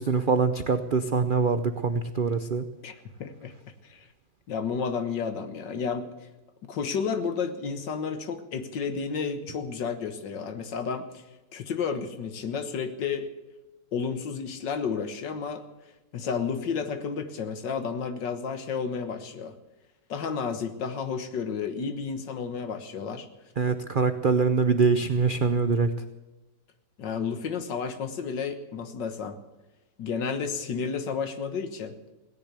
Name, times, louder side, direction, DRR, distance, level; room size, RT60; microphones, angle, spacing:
voice 1, 0.0-2.6 23.6-25.9, right 4 dB, 90° right, 10 dB, 0.4 m, -24 dB
voice 2, 2.8-3.5 3.9-4.1 4.5-6.1 6.6-11.1 11.5-13.3 13.9-15.6 16.1-19.6 20.1-23.3 27.0-29.4 30.0-31.9, left 6 dB, 75° left, 9 dB, 1.9 m, -31 dB
17.0 x 10.5 x 8.1 m, 1.1 s
omnidirectional pair, 2.0 m